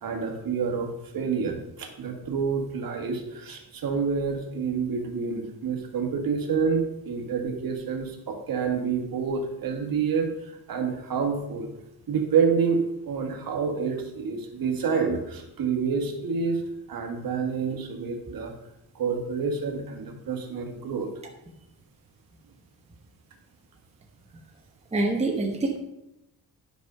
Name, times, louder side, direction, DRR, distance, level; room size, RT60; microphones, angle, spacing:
voice 1, 0.0-10.3 10.7-11.7 12.1-16.6 16.9-18.5 18.9-21.1, right 5 dB, 60° right, 3 dB, 1.6 m, -28 dB
voice 2, 24.9-25.8, right 2 dB, 15° right, 1 dB, 1.0 m, -25 dB
10.0 x 5.3 x 5.5 m, 0.87 s
wide cardioid pair, 150°, 40 cm